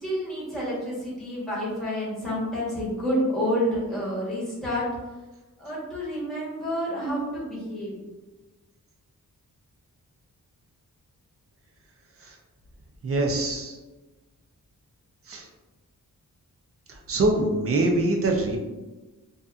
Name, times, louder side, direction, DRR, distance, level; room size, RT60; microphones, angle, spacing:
voice 1, 0.0-4.8 5.6-8.0, equal, ahead, -8 dB, 1.2 m, -29 dB
voice 2, 13.0-13.8 15.3-15.4 17.1-18.6, right 2 dB, 45° right, 1 dB, 0.5 m, -24 dB
2.7 x 2.3 x 2.4 m, 1.2 s
wide cardioid pair, 110°, 33 cm